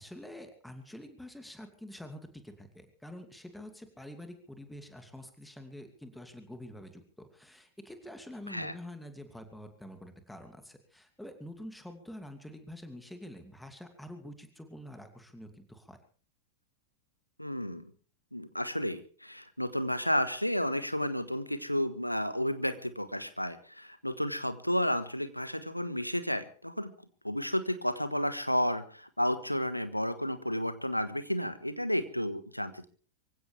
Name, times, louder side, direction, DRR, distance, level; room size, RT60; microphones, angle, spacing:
voice 1, 0.0-16.0, left 1 dB, 5° left, 7 dB, 2.6 m, -47 dB
voice 2, 17.4-17.9 18.3-26.9 27.2-32.9, equal, 90° left, 12 dB, 1.4 m, -32 dB
24.5 x 16.0 x 3.4 m, 0.40 s
figure-of-eight pair, 90°, 0 cm